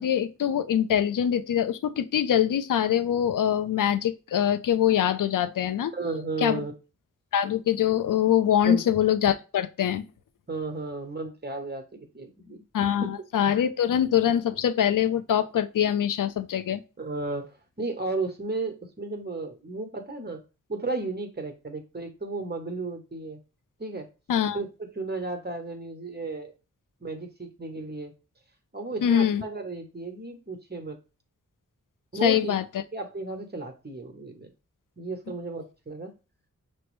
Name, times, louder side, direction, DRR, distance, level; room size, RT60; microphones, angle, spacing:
voice 1, 0.0-5.9 6.4-6.6 7.3-10.0 12.7-16.8 24.3-24.6 29.0-29.4 32.2-32.6, left 9 dB, 75° left, 0.5 m, -24 dB
voice 2, 5.9-6.7 8.6-8.8 10.5-11.8 12.1-12.6 13.0-13.1 17.0-20.4 20.7-23.4 23.8-24.1 24.5-26.5 27.0-28.1 28.7-31.0 32.1-32.6 32.9-34.5 35.0-36.1, right 3 dB, 30° right, 1.2 m, -34 dB
6.1 x 2.0 x 3.2 m
cardioid pair, 50°, 32 cm